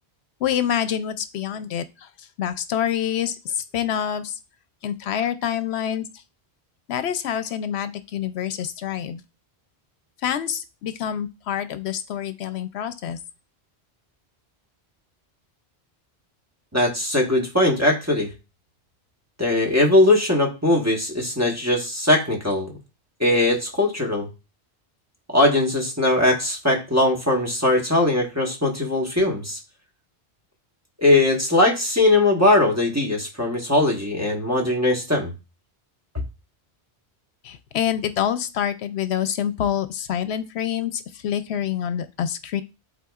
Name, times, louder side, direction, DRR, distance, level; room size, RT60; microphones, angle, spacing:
voice 1, 0.4-4.4 4.8-6.0 6.9-9.2 10.2-13.2 37.4-42.6, left 9 dB, 75° left, 11 dB, 0.8 m, -27 dB
voice 2, 16.7-18.3 19.4-22.7 23.2-24.3 25.3-29.6 31.0-35.3, left 1 dB, 15° right, 0 dB, 1.3 m, -20 dB
11.0 x 4.1 x 2.4 m, 0.29 s
omnidirectional pair, 1.1 m